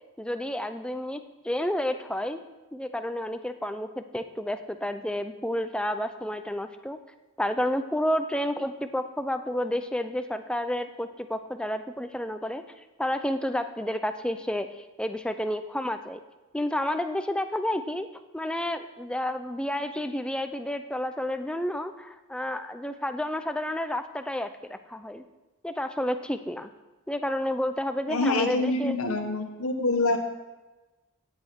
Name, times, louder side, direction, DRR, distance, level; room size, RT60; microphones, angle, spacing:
voice 1, 0.2-1.2 1.4-2.4 2.7-7.0 7.4-16.2 16.5-18.1 18.3-25.2 25.6-26.7 27.1-29.0, left 1 dB, 5° left, 8 dB, 0.4 m, -30 dB
voice 2, 28.1-30.2, left 2 dB, 75° left, 4 dB, 1.4 m, -26 dB
15.0 x 8.4 x 4.5 m, 1.1 s
head